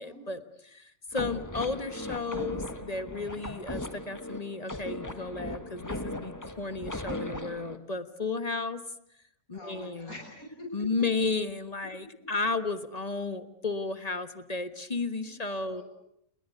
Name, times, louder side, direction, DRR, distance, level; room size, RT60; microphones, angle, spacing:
voice 1, 0.0-8.8 9.5-10.1 10.7-15.8, left 3 dB, 30° left, 10 dB, 1.4 m, -33 dB
sound 1, 1.1-7.8, left 1 dB, 15° left, 1.5 m, -38 dB
voice 2, 9.5-10.7 15.2-15.4 15.7-15.8, left 1 dB, 80° left, 1 dB, 7.8 m, -45 dB
29.5 x 21.0 x 8.5 m, 0.74 s
omnidirectional pair, 1.5 m